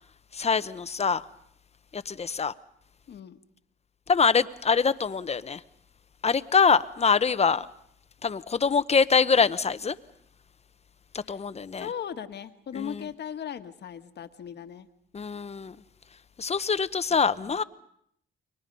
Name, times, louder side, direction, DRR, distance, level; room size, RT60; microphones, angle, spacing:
voice 1, 0.3-1.2 1.9-2.5 4.1-5.6 6.2-7.7 8.2-9.9 11.3-11.9 12.8-13.0 15.1-15.7 16.4-17.6, left 5 dB, 30° left, 1.0 m, -24 dB
voice 2, 3.1-3.4 11.2-11.4 11.8-14.9 17.1-17.6, left 8 dB, 60° left, 1.6 m, -38 dB
30.0 x 23.0 x 5.4 m
cardioid pair, 90°, 20 cm